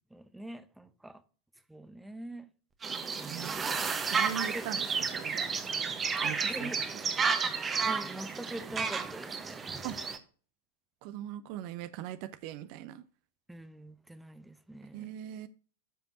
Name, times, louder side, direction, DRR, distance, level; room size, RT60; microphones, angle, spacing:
voice 1, 0.1-1.2 1.7-2.5 3.1-4.0 4.2-4.7 6.5-7.0 7.9-9.6 13.5-15.2, right 1 dB, 5° right, 0.7 m, -44 dB
sound 1, 2.8-10.2, right 5 dB, 20° right, 1.0 m, -32 dB
voice 2, 4.1-5.5 6.2-6.7 9.8-10.0 11.0-13.0 14.9-15.5, right 11 dB, 45° right, 0.5 m, -40 dB
12.0 x 5.2 x 2.7 m
figure-of-eight pair, 90°, 0 cm